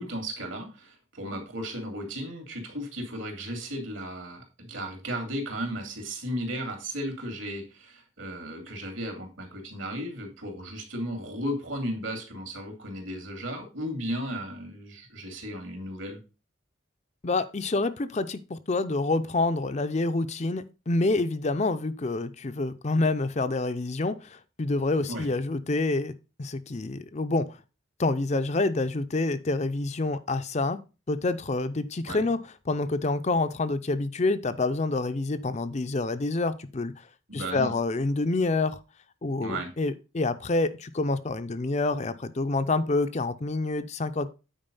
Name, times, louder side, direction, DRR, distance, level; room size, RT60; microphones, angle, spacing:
voice 1, 0.0-16.2 25.0-25.3 32.1-32.2 37.3-37.7 39.4-39.7, equal, 70° right, 4 dB, 2.9 m, -35 dB
voice 2, 17.2-26.1 26.4-27.6 28.0-30.8 31.1-32.4 32.7-37.0 37.3-38.8 39.2-44.3, left 2 dB, 35° left, 11 dB, 0.5 m, -27 dB
8.9 x 4.8 x 5.3 m, 0.31 s
head